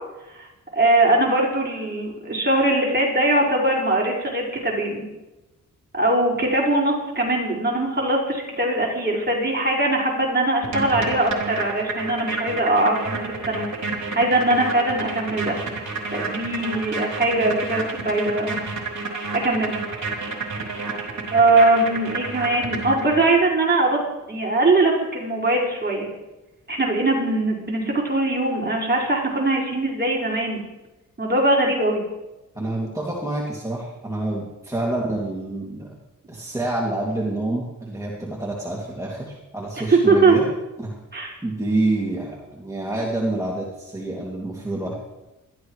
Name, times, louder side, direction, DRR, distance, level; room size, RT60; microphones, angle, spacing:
voice 1, 0.7-5.0 5.9-13.2 13.5-13.6 14.0-15.6 16.1-18.6 19.3-19.8 21.3-24.0 24.3-26.1 26.7-30.6 31.2-32.0 39.9-40.4 41.1-41.3, right 2 dB, 30° right, -3 dB, 5.2 m, -21 dB
sound 1, 10.6-23.4, right 3 dB, 55° right, 3.4 m, -30 dB
voice 2, 32.5-36.0 36.3-40.5 40.8-41.0 41.4-44.9, right 2 dB, 10° right, -3 dB, 2.6 m, -27 dB
20.5 x 13.5 x 3.2 m, 1.0 s
cardioid pair, 70°, 33 cm